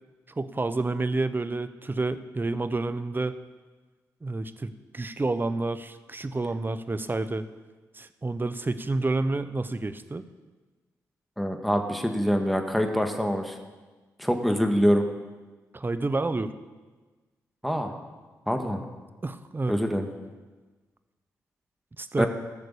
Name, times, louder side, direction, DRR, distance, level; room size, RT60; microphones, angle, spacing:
voice 1, 0.4-3.3 4.2-7.5 7.9-10.2 15.7-16.5 19.2-19.7 22.0-22.3, right 2 dB, 30° right, 12 dB, 0.9 m, -29 dB
voice 2, 11.4-13.6 14.2-15.1 17.6-17.9 18.5-18.8 19.7-20.1 22.2-22.3, equal, ahead, 4 dB, 1.8 m, -25 dB
14.5 x 6.7 x 6.8 m, 1.3 s
supercardioid pair, 45°, 7 cm